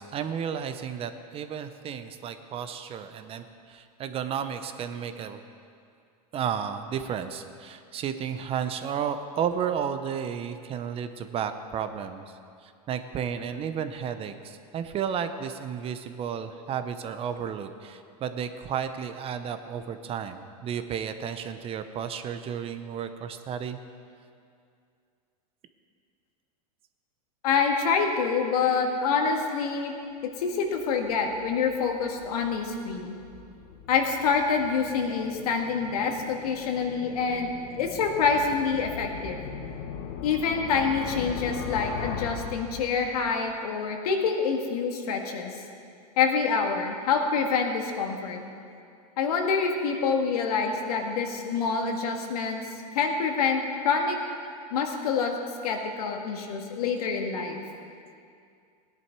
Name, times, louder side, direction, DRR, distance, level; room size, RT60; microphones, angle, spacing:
voice 1, 0.0-5.4 6.3-12.2 12.6-23.8, right 8 dB, 30° right, 9 dB, 0.7 m, -33 dB
voice 2, 27.4-30.0 30.4-33.1 33.9-37.5 37.8-39.4 40.2-45.6 46.2-48.4 49.2-52.6 53.0-54.2 54.7-55.4 55.6-57.6, left 5 dB, 70° left, 3 dB, 1.9 m, -26 dB
sound 1, 30.5-43.4, left 7 dB, 50° left, 1.3 m, -40 dB
17.0 x 10.5 x 4.7 m, 2.4 s
hypercardioid pair, 115°, 20 cm